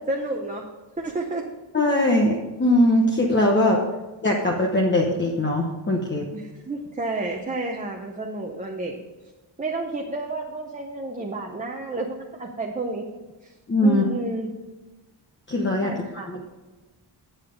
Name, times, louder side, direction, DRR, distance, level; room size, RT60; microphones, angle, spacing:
voice 1, 0.1-0.7 1.0-1.5 6.3-9.0 9.6-13.0 13.4-13.5 13.8-14.5 15.8-16.3, right 2 dB, 15° right, 1 dB, 0.7 m, -30 dB
voice 2, 1.7-3.8 4.2-6.3 13.7-14.0 15.5-15.9 16.3-16.4, left 1 dB, 25° left, -1 dB, 1.0 m, -21 dB
8.8 x 7.3 x 5.1 m, 1.2 s
wide cardioid pair, 155°, 46 cm